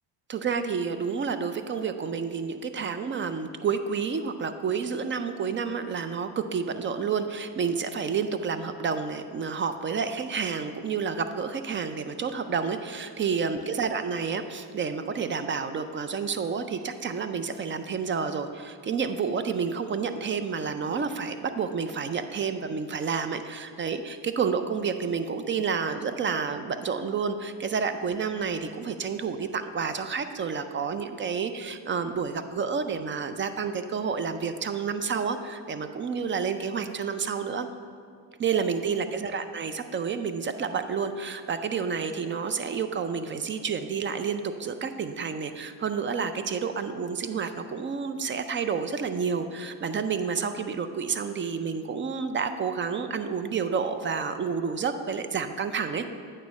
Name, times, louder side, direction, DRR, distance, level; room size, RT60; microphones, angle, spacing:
voice 1, 0.3-37.7 38.4-56.1, right 6 dB, 25° right, 10 dB, 0.4 m, -30 dB
8.9 x 3.2 x 6.2 m, 2.2 s
supercardioid pair, 70°, 48 cm